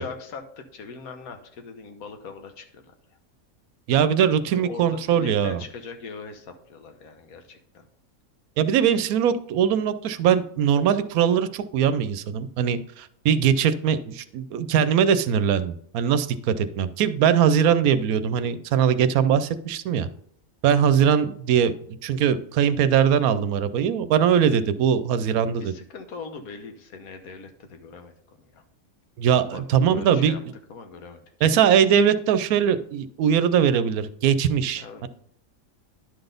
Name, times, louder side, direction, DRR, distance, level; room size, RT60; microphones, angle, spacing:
voice 1, 0.0-2.9 4.5-7.8 21.0-21.1 25.6-28.6 29.4-29.6 29.9-30.4 30.7-31.2 34.8-35.1, left 4 dB, 80° left, 6 dB, 1.4 m, -41 dB
voice 2, 3.9-5.6 8.6-20.1 20.6-21.7 22.0-25.7 29.2-30.4 31.4-35.1, right 8 dB, 85° right, 13 dB, 1.0 m, -21 dB
11.0 x 4.0 x 5.1 m, 0.65 s
omnidirectional pair, 1.5 m